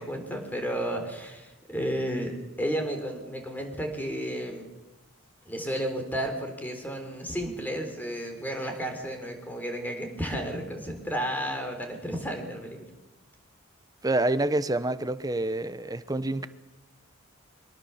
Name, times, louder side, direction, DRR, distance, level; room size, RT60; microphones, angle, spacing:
voice 1, 0.0-4.7 5.5-12.8, equal, 10° left, 4 dB, 3.7 m, -32 dB
voice 2, 14.0-16.5, right 2 dB, 15° right, 13 dB, 0.9 m, -27 dB
24.0 x 18.5 x 7.2 m, 1.0 s
head